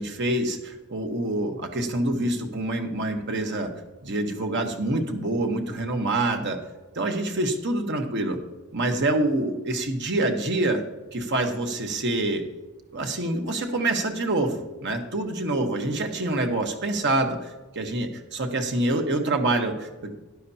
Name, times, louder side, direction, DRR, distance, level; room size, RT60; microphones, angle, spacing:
voice 1, 0.0-3.7 4.0-6.6 6.9-8.4 8.7-10.8 11.1-12.5 12.9-20.1, right 2 dB, 55° right, 4 dB, 1.2 m, -26 dB
12.5 x 11.0 x 2.8 m, 1.1 s
head